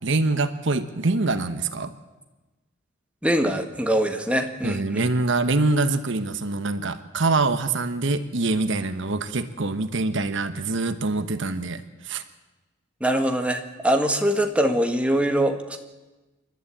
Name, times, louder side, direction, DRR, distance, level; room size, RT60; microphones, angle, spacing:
voice 1, 0.0-1.9 4.6-12.2, right 3 dB, 70° right, 10 dB, 1.1 m, -24 dB
voice 2, 3.2-5.0 13.0-15.8, right 1 dB, 5° right, 5 dB, 1.7 m, -23 dB
28.5 x 12.0 x 8.5 m, 1.1 s
head